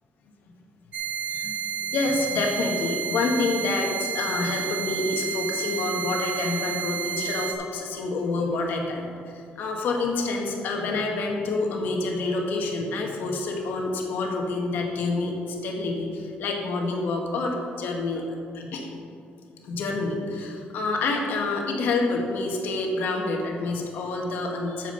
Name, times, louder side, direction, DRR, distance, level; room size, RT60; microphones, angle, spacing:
sound 1, 0.9-7.5, right 9 dB, 45° right, 1.0 m, -31 dB
voice 1, 1.9-18.2 18.5-18.9 19.6-24.9, left 3 dB, 60° left, 1 dB, 1.4 m, -27 dB
8.3 x 7.3 x 5.6 m, 2.4 s
cardioid pair, 175°, 4 cm